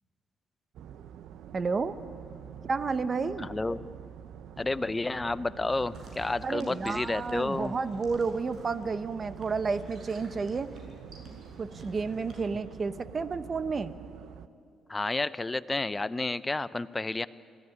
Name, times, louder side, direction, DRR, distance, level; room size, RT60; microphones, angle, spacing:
sound 1, 0.7-14.5, right 9 dB, 75° right, 0.8 m, -47 dB
voice 1, 1.5-2.0 2.7-3.5 6.4-10.7 11.6-14.0, right 4 dB, 35° right, 12 dB, 1.0 m, -31 dB
voice 2, 3.4-3.8 4.6-7.7 14.9-17.3, left 2 dB, 15° left, 16 dB, 0.6 m, -31 dB
sound 2, 5.7-12.4, right 2 dB, 50° right, 7.0 m, -52 dB
26.0 x 16.0 x 9.6 m, 2.5 s
cardioid pair, 110°, 0 cm